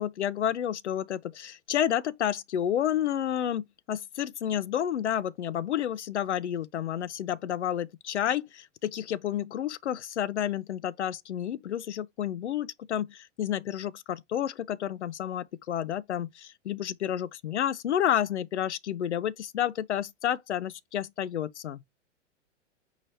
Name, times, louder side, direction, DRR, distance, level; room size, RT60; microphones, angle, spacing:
voice 1, 0.0-21.8, left 10 dB, 65° left, 0.5 m, -30 dB
4.7 x 2.7 x 3.2 m
figure-of-eight pair, 100°, 37 cm